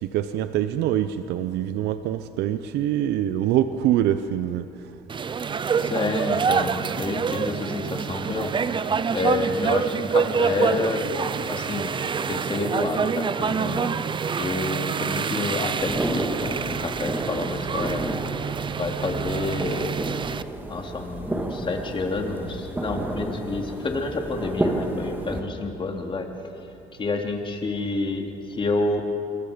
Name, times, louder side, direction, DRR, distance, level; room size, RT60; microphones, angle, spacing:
voice 1, 0.0-4.6 8.3-8.4, right 11 dB, 85° right, 11 dB, 0.7 m, -24 dB
sound 1, 5.1-20.4, right 6 dB, 30° right, 0.6 m, -27 dB
voice 2, 5.8-8.5 9.1-11.1 11.4-12.0 12.3-13.9 14.4-18.0 18.8-19.9 20.7-26.3 27.0-29.0, left 3 dB, 30° left, 2 dB, 2.7 m, -28 dB
sound 2, 15.8-25.4, right 1 dB, 10° right, 2.0 m, -31 dB
27.0 x 22.0 x 5.2 m, 2.6 s
cardioid pair, 110°, 17 cm